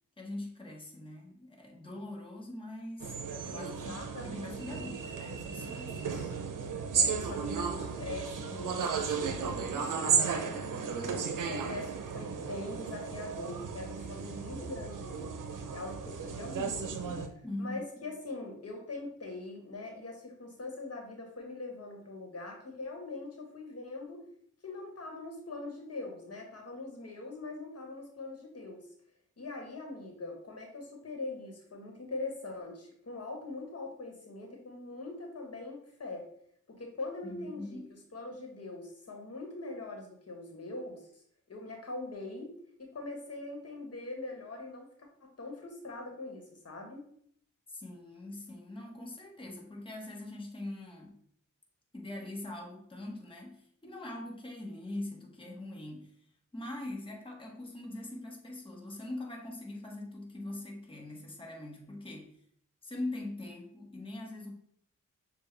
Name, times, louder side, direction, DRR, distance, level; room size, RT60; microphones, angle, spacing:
voice 1, 0.2-6.0 17.4-17.8 37.2-37.9 47.7-51.2 51.9-62.4 62.8-64.5, left 1 dB, 15° left, -1 dB, 1.1 m, -42 dB
sound 1, 3.0-17.3, right 6 dB, 80° right, 0.6 m, -34 dB
voice 2, 3.5-5.0 5.7-6.5 7.0-15.3 15.7-24.2 24.6-28.9 29.4-36.3 36.7-42.5 42.8-47.0, left 2 dB, 50° left, 2 dB, 1.2 m, -42 dB
6.7 x 2.3 x 3.2 m, 0.66 s
cardioid pair, 60°, 31 cm